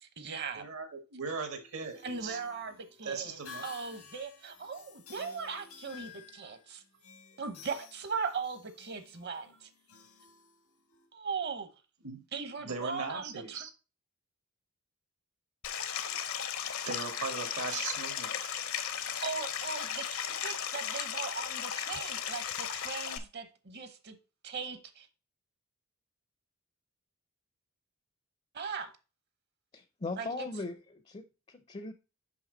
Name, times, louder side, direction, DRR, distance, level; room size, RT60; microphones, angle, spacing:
voice 1, 0.0-0.7 2.0-6.8 7.4-9.7 11.1-11.7 12.3-13.7 19.2-24.2 24.4-25.1 28.5-28.9 30.2-30.5, right 5 dB, 50° right, 1.0 m, -39 dB
voice 2, 0.5-2.4 3.0-3.7 12.0-13.7 16.8-18.4, right 4 dB, 75° right, 1.5 m, -39 dB
sound 1, 1.5-11.1, left 6 dB, 90° left, 1.5 m, -53 dB
Stream, 15.6-23.2, left 8 dB, 70° left, 0.8 m, -36 dB
voice 3, 29.7-31.9, left 3 dB, 25° left, 0.5 m, -39 dB
5.8 x 5.5 x 3.9 m
head